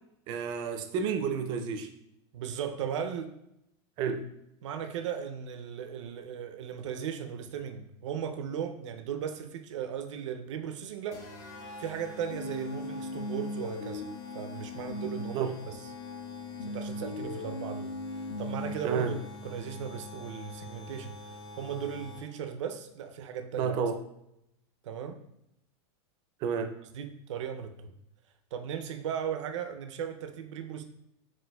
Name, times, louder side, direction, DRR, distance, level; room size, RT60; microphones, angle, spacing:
voice 1, 0.3-1.9 4.0-4.2 15.3-15.5 18.8-19.1 23.5-24.0 26.4-26.7, right 6 dB, 30° right, 7 dB, 0.4 m, -30 dB
voice 2, 2.3-3.3 4.6-11.2 11.8-14.0 14.3-15.7 16.7-17.9 18.4-19.2 19.4-23.7 24.8-25.2 26.9-27.9 28.5-30.8, right 8 dB, 90° right, 7 dB, 0.5 m, -37 dB
sound 1, 11.1-22.5, left 2 dB, 25° left, 0.5 m, -46 dB
sound 2, 12.3-15.3 15.7-18.7, left 2 dB, 80° left, 0.9 m, -39 dB
7.4 x 2.5 x 2.2 m, 0.81 s
supercardioid pair, 160°, 15 cm